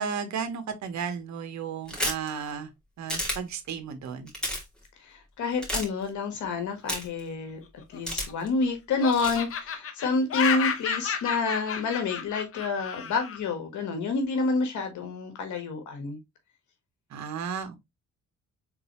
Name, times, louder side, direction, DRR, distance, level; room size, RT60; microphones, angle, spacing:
voice 1, 0.0-2.7 3.0-4.3 17.1-17.8, right 6 dB, 70° right, 1.1 m, -34 dB
sound 1, 1.9-2.3 3.1-3.4 4.3-4.6 5.6-5.8 6.9-7.2 8.1-8.5 9.1-9.4, equal, 5° left, 2.4 m, -30 dB
voice 2, 5.0-7.6 7.9-16.2, left 3 dB, 75° left, 1.3 m, -28 dB
Laughter, 7.8-8.6 9.0-13.4, left 7 dB, 50° left, 0.8 m, -31 dB
3.9 x 3.8 x 2.9 m
cardioid pair, 90°, 30 cm